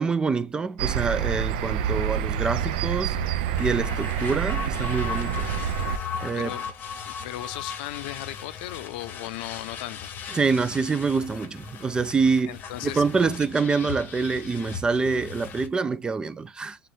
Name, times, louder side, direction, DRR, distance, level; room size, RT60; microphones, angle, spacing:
voice 1, 0.0-3.2 3.6-5.5 6.2-6.5 10.3-12.6 12.9-16.8, right 4 dB, 15° right, 0.3 m, -26 dB
sound 1, 0.8-6.0, right 9 dB, 90° right, 0.4 m, -27 dB
sound 2, 3.6-15.7, left 7 dB, 40° left, 0.8 m, -37 dB
voice 2, 6.3-6.7 7.0-10.1 12.4-13.3, left 15 dB, 85° left, 0.5 m, -37 dB
3.7 x 3.2 x 4.0 m
supercardioid pair, 125°, 5 cm